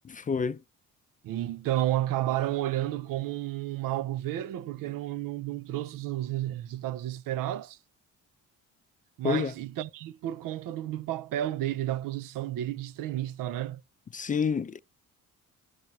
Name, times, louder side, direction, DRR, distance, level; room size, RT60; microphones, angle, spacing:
voice 1, 0.0-0.6 9.2-9.5 14.1-14.8, left 6 dB, 25° left, 0.4 m, -28 dB
voice 2, 1.2-7.8 9.2-13.8, right 13 dB, 80° right, 0.6 m, -31 dB
12.0 x 6.0 x 2.7 m
cardioid pair, 80°, 32 cm